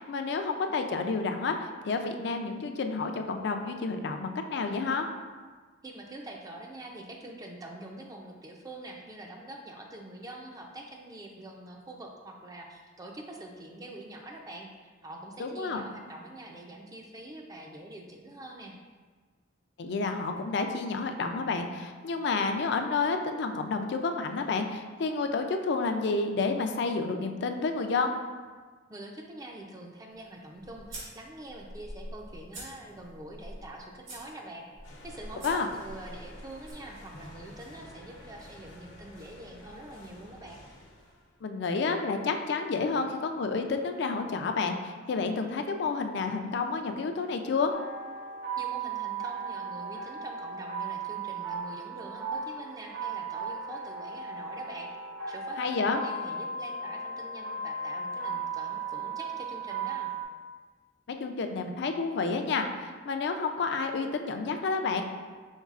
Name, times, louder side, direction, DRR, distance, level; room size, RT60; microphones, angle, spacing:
voice 1, 0.0-5.1 15.4-15.8 19.8-28.1 35.4-35.7 41.4-47.7 55.6-56.0 61.1-65.0, left 4 dB, 60° left, 6 dB, 0.4 m, -30 dB
voice 2, 5.8-18.8 28.9-34.7 35.0-40.6 48.6-54.9 55.3-60.1, right 1 dB, 20° right, 1 dB, 0.4 m, -45 dB
sound 1, 30.1-36.7, right 1 dB, 80° right, 1.5 m, -46 dB
sound 2, 34.8-41.4, left 1 dB, 80° left, 0.9 m, -50 dB
sound 3, 47.7-60.2, right 4 dB, 55° right, 0.9 m, -36 dB
5.4 x 3.8 x 2.4 m, 1.5 s
head